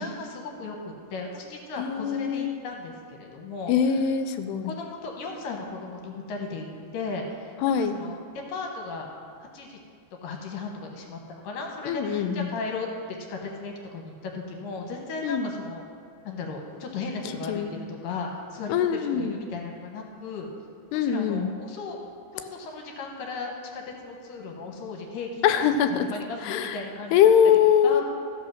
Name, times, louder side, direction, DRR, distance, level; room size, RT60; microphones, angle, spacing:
voice 1, 0.0-4.0 4.6-8.2 8.5-9.1 9.5-9.8 10.2-15.8 16.2-20.5 20.9-22.0 22.3-27.3 27.8-28.0, left 3 dB, 65° left, 1 dB, 2.5 m, -36 dB
voice 2, 1.8-2.6 3.7-4.7 7.6-8.0 11.9-12.5 15.2-15.5 17.5-17.7 18.7-19.4 20.9-21.5 25.4-26.1 26.4-26.8 27.1-28.0, left 8 dB, 85° left, 9 dB, 2.6 m, -22 dB
14.0 x 5.6 x 6.3 m, 2.3 s
omnidirectional pair, 4.7 m